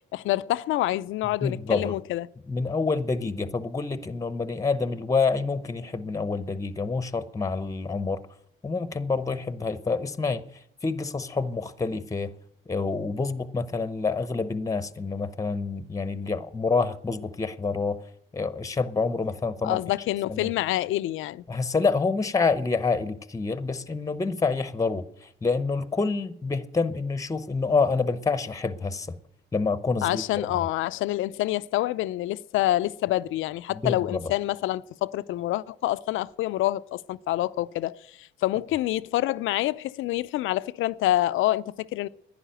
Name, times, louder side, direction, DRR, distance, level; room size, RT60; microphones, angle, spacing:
voice 1, 0.1-2.3 19.6-21.4 30.0-42.1, left 15 dB, 85° left, 0.5 m, -27 dB
voice 2, 1.4-2.0 2.5-8.2 8.6-10.4 10.8-12.3 12.7-18.0 18.3-19.8 20.3-20.5 21.5-29.2 29.5-30.2 33.7-34.2, left 4 dB, 15° left, 0.8 m, -27 dB
11.0 x 10.0 x 8.9 m
cardioid pair, 90°, 20 cm